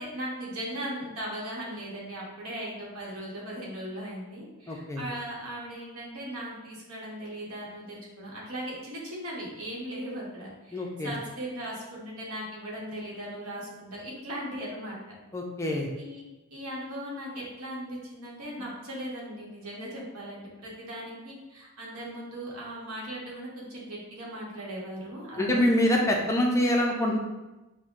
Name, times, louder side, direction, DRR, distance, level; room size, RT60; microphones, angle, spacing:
voice 1, 0.0-15.0 16.0-16.2 16.5-25.6, right 1 dB, 85° right, -4 dB, 1.0 m, -38 dB
voice 2, 4.7-5.0 10.7-11.1 15.3-15.9 25.4-27.2, left 1 dB, 15° left, -1 dB, 0.3 m, -25 dB
5.4 x 2.1 x 2.4 m, 1.1 s
head